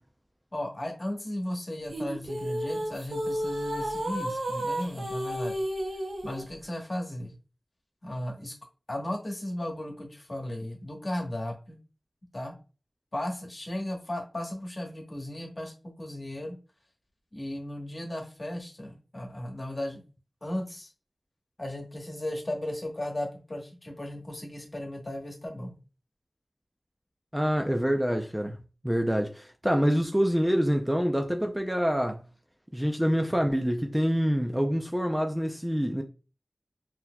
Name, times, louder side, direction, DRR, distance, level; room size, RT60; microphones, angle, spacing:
voice 1, 0.5-5.6 6.2-7.3 8.0-8.5 8.9-11.8 12.3-12.5 13.1-16.6 17.3-20.0 20.4-20.9 21.6-25.7, left 1 dB, 40° left, 1.2 m, -35 dB
sound 1, 1.9-6.4, equal, 85° right, 0.8 m, -32 dB
voice 2, 27.3-28.6 28.8-32.2 32.7-36.0, equal, 5° right, 0.4 m, -26 dB
4.0 x 2.7 x 2.2 m
wide cardioid pair, 55°, 0 cm